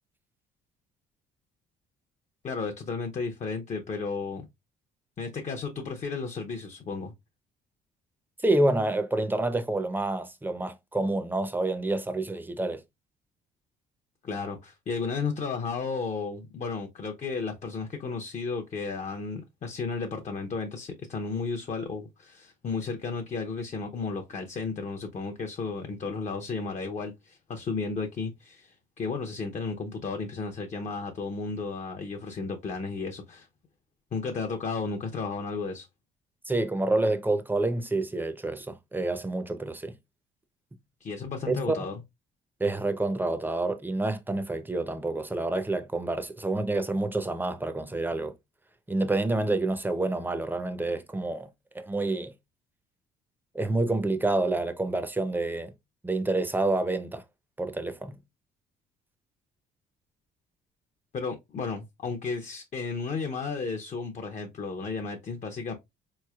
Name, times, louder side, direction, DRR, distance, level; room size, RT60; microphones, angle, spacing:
voice 1, 2.4-4.4 5.2-7.1 14.2-33.5 34.1-35.9 41.0-41.9 61.1-65.7, left 4 dB, 40° left, 0.7 m, -33 dB
voice 2, 8.4-12.8 36.5-39.9 41.5-41.8 42.6-48.3 48.9-51.5 51.7-52.3 53.5-55.7 56.0-57.2 57.6-58.2, right 2 dB, 10° right, 0.6 m, -28 dB
4.0 x 3.1 x 2.3 m
cardioid pair, 90°, 20 cm